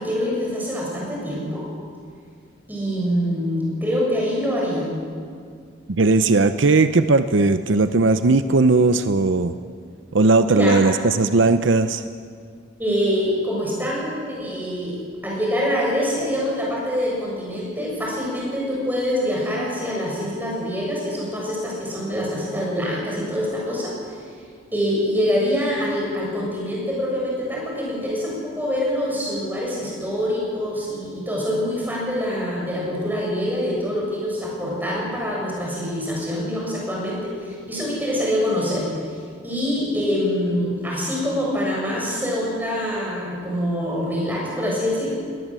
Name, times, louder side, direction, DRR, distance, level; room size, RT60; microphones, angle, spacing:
voice 1, 0.0-1.6 2.7-4.9 10.4-11.0 12.8-24.2 24.7-38.9 39.4-45.1, equal, 10° right, -4 dB, 7.2 m, -25 dB
voice 2, 5.9-9.5 10.1-12.0, right 3 dB, 80° right, 10 dB, 0.7 m, -17 dB
20.5 x 19.0 x 7.6 m, 2.1 s
head